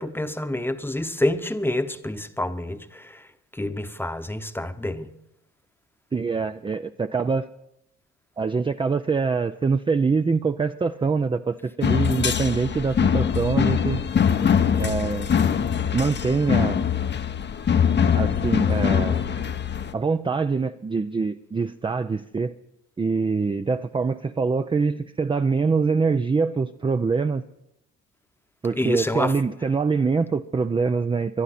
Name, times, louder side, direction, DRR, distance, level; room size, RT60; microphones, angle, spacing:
voice 1, 0.0-3.2 3.6-5.1 28.7-29.3, left 1 dB, 5° left, 9 dB, 1.0 m, -27 dB
voice 2, 6.1-7.5 8.4-14.0 14.8-15.3 15.9-16.8 18.1-19.2 19.9-22.5 23.0-27.4 28.6-31.4, right 4 dB, 15° right, 9 dB, 0.4 m, -24 dB
sound 1, 11.8-19.9, left 7 dB, 35° left, 0.8 m, -22 dB
22.5 x 11.5 x 4.3 m, 0.81 s
cardioid pair, 90°, 30 cm